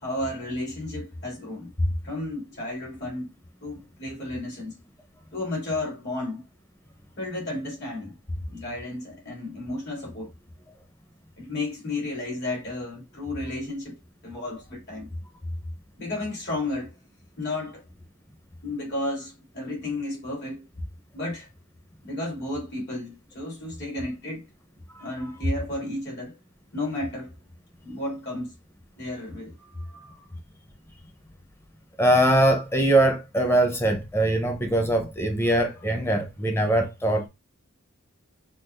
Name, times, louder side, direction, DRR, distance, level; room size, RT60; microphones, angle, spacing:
voice 1, 0.0-3.3 3.6-4.8 5.3-6.4 7.2-8.2 8.5-10.3 11.4-15.1 16.0-16.9 17.4-17.8 18.6-20.7 21.1-21.5 22.0-24.5 25.0-26.4 26.7-27.4 27.8-28.5 29.0-30.3, left 2 dB, 55° left, 2.8 m, -32 dB
voice 2, 32.0-37.3, right 1 dB, 10° left, 0.9 m, -22 dB
6.0 x 2.5 x 2.5 m
head